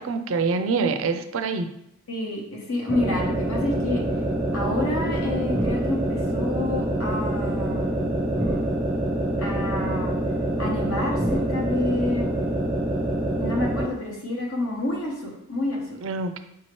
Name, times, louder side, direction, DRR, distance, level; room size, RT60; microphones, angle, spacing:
voice 1, 0.0-1.7 16.0-16.4, right 4 dB, 65° right, 8 dB, 0.4 m, -25 dB
voice 2, 2.1-4.0 4.5-8.2 9.4-10.1 10.6-12.3 13.4-16.0, left 2 dB, 70° left, -1 dB, 1.0 m, -29 dB
sound 1, 2.9-13.9, right 1 dB, 10° right, 0.5 m, -25 dB
4.8 x 2.8 x 3.0 m, 0.80 s
head